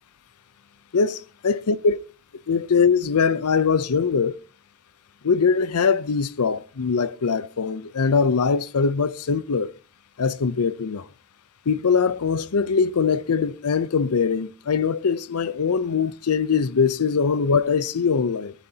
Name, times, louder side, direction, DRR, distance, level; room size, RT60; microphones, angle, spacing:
voice 1, 0.9-2.0 2.5-4.4 5.2-9.7 10.2-11.1 11.7-18.5, left 5 dB, 85° left, 0.6 m, -22 dB
19.0 x 12.5 x 2.8 m
head